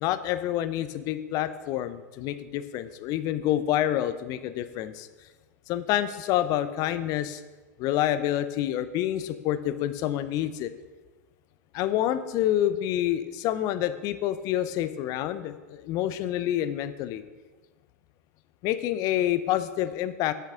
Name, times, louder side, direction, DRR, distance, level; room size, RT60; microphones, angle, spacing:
voice 1, 0.0-5.1 5.7-7.4 7.8-10.7 11.7-17.2 18.6-20.3, left 12 dB, 40° left, 13 dB, 0.5 m, -28 dB
7.8 x 6.7 x 3.6 m, 1.3 s
hypercardioid pair, 95°, 9 cm